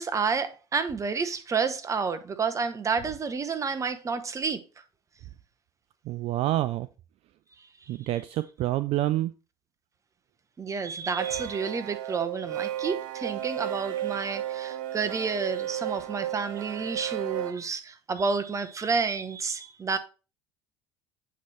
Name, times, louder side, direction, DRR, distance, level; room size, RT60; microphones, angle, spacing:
voice 1, 0.0-4.6 10.6-20.0, right 5 dB, 25° right, 0.8 m, -30 dB
voice 2, 6.1-6.9 7.9-9.3, right 15 dB, 55° right, 0.3 m, -27 dB
sound 1, 11.0-17.5, right 12 dB, 75° right, 0.8 m, -34 dB
8.1 x 3.2 x 4.2 m
supercardioid pair, 95°, 12 cm